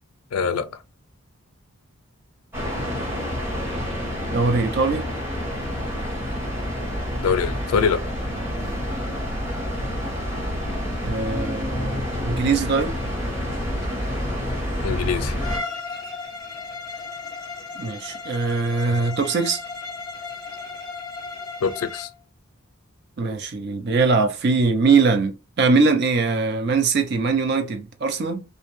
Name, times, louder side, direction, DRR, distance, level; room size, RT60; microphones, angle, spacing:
voice 1, 0.3-0.7 7.2-8.0 14.8-15.3 21.6-22.1, left 6 dB, 85° left, 0.4 m, -23 dB
sound 1, 2.5-15.6, equal, 10° right, 0.9 m, -28 dB
voice 2, 4.3-5.1 11.0-12.9 17.8-19.6 23.2-28.4, right 4 dB, 50° right, 0.4 m, -21 dB
Bowed string instrument, 15.4-22.2, left 4 dB, 20° left, 0.5 m, -35 dB
2.5 x 2.2 x 3.0 m
head